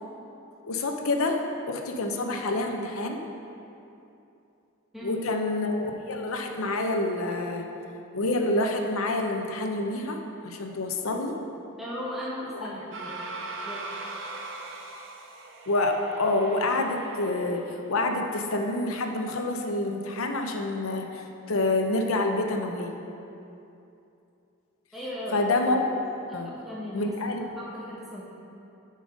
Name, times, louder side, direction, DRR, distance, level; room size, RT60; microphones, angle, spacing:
voice 1, 0.6-1.4 1.7-3.2 5.0-7.7 8.1-10.2 10.4-11.3 15.7-22.9 25.3-25.8 26.3-26.5 26.9-27.5, left 2 dB, 90° left, 4 dB, 0.7 m, -27 dB
voice 2, 11.8-13.2 13.6-13.9 24.9-25.5 25.9-26.0 26.3-28.2, left 1 dB, ahead, -8 dB, 1.1 m, -37 dB
sound 1, 12.9-18.0, right 2 dB, 60° right, 0.7 m, -40 dB
7.5 x 5.3 x 5.1 m, 2.8 s
head